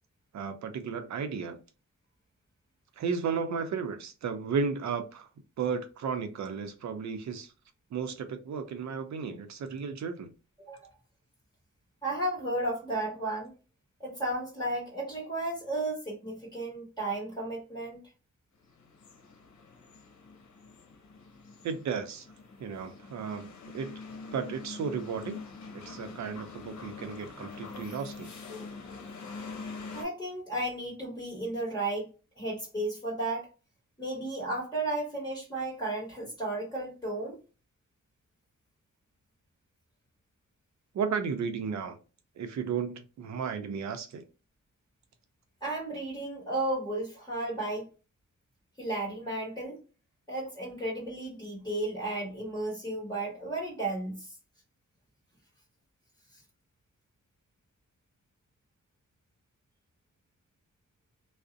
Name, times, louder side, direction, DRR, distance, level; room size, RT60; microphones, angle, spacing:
voice 1, 0.3-1.6 3.0-5.3 5.6-7.5 7.9-10.3 21.6-22.3 22.6-23.9 24.3-25.4 25.7-28.3 40.9-42.0 42.4-44.2, right 6 dB, 65° right, 0.6 m, -34 dB
voice 2, 10.6-10.9 12.0-13.5 14.0-18.0 29.9-32.1 32.4-33.5 34.0-37.4 45.6-47.9 48.8-49.8 50.3-54.3 56.3-56.4, right 2 dB, 15° left, 1.2 m, -33 dB
sound 1, 18.6-30.0, left 4 dB, 65° left, 0.8 m, -45 dB
2.4 x 2.0 x 2.5 m
cardioid pair, 115°, 30 cm